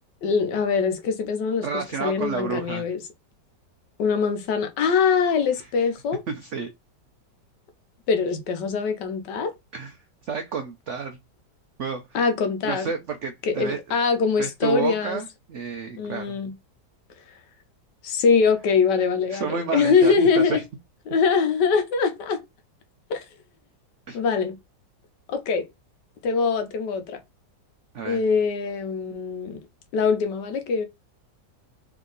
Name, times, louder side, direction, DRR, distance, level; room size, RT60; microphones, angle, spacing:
voice 1, 0.2-3.0 4.0-6.2 8.1-9.5 12.1-12.9 13.5-15.2 16.0-16.5 18.0-20.6 21.1-22.4 23.1-23.2 24.1-24.6 25.3-25.6 26.2-27.2 28.0-29.6 29.9-30.8, left 5 dB, 75° left, 1.4 m, -23 dB
voice 2, 1.6-2.9 5.6-5.7 6.3-6.7 9.7-10.0 10.2-11.2 11.8-12.2 12.6-14.0 14.4-16.4 19.3-20.6 24.1-24.2 27.9-28.2, right 6 dB, 80° right, 0.6 m, -30 dB
3.5 x 2.8 x 3.8 m
omnidirectional pair, 1.9 m